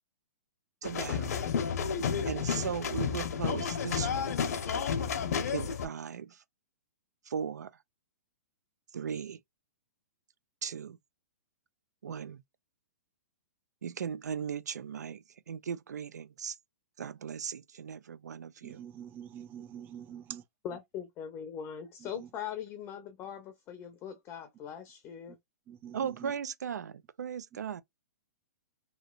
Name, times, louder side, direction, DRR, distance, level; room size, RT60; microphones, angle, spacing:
sound 1, 0.8-5.9, left 6 dB, 70° left, 0.8 m, -31 dB
voice 1, 0.8-1.4 2.2-4.4 5.5-6.4 7.3-7.7 8.9-9.4 10.6-11.0 12.0-12.4 13.8-16.6 17.0-18.8 25.9-27.8, right 7 dB, 90° right, 0.5 m, -37 dB
voice 2, 18.6-20.4 22.2-22.3 25.7-26.0, right 10 dB, 20° right, 0.3 m, -45 dB
voice 3, 20.6-25.4, left 8 dB, 25° left, 0.6 m, -41 dB
3.1 x 2.7 x 2.3 m
hypercardioid pair, 140°, 9 cm